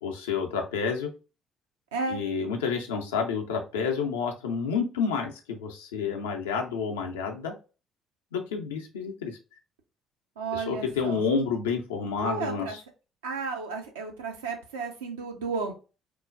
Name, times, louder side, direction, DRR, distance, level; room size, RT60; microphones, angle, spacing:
voice 1, 0.0-1.1 2.1-7.5 8.3-9.3 10.5-12.8, left 5 dB, 85° left, 2 dB, 0.5 m, -29 dB
voice 2, 10.4-11.2 12.2-12.8 13.2-15.7, right 4 dB, 85° right, 3 dB, 0.5 m, -33 dB
3.0 x 2.1 x 2.4 m, 0.32 s
hypercardioid pair, 55°, 0 cm